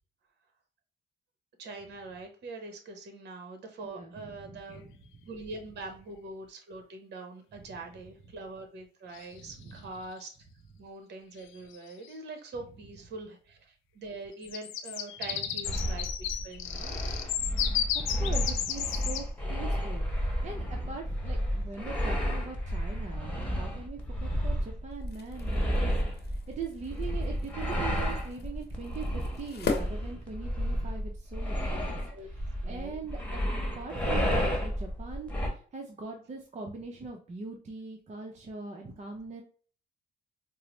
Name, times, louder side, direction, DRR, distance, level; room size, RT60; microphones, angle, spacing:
voice 1, 1.6-4.8 5.3-10.3 10.8-17.0 31.7-32.3 32.6-32.9, right 2 dB, 60° right, 5 dB, 0.9 m, -43 dB
voice 2, 3.8-4.9 5.2-5.3 9.4-9.9 15.3-15.4 15.8-16.0 17.9-19.2 19.5-26.0 26.5-31.9 32.2-33.4 33.7-39.4, right 4 dB, 35° right, 2 dB, 0.6 m, -42 dB
sound 1, 4.8-4.9 9.1-9.7 11.4-11.5 11.7-12.1 14.3-19.3, left 10 dB, 90° left, 0.5 m, -33 dB
sound 2, 15.6-35.5, equal, 5° left, 1.2 m, -32 dB
sound 3, 24.9-30.9, left 4 dB, 55° left, 0.9 m, -40 dB
4.5 x 2.0 x 2.9 m, 0.42 s
cardioid pair, 90°, 20 cm